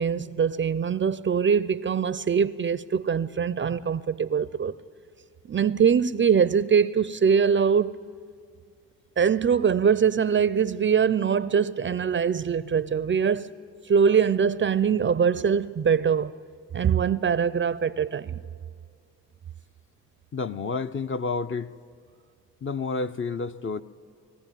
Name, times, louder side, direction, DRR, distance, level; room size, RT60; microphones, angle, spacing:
voice 1, 0.0-4.7 5.5-7.9 9.2-13.5 13.9-16.3 16.7-18.4, right 7 dB, 35° right, 0.5 m, -23 dB
voice 2, 20.3-21.7 22.6-23.8, left 4 dB, 35° left, 0.7 m, -30 dB
21.0 x 15.0 x 9.1 m
hypercardioid pair, 45°, 36 cm